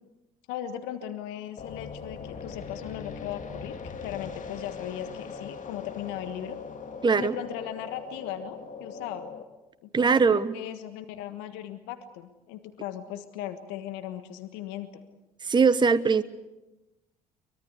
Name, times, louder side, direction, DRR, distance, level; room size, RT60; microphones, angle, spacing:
voice 1, 0.5-6.6 7.1-9.3 9.8-14.9, left 11 dB, 70° left, 10 dB, 1.4 m, -38 dB
sound 1, 1.6-9.4, left 5 dB, 45° left, 2.4 m, -40 dB
voice 2, 7.0-7.3 9.9-10.5 15.4-16.2, right 5 dB, 25° right, 12 dB, 1.1 m, -21 dB
23.5 x 22.0 x 8.1 m, 1.0 s
hypercardioid pair, 55°, 18 cm